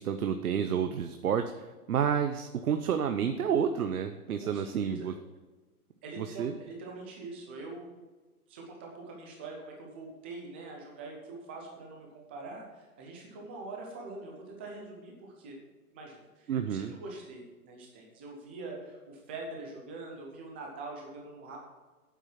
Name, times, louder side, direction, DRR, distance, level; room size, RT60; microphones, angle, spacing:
voice 1, 0.0-5.1 6.2-6.6 16.5-16.9, right 7 dB, 70° right, 7 dB, 0.9 m, -30 dB
voice 2, 4.4-5.1 6.0-7.9 8.5-15.6 15.9-21.6, right 3 dB, 10° right, 0 dB, 0.5 m, -44 dB
9.1 x 7.4 x 5.8 m, 1.2 s
hypercardioid pair, 155°, 45 cm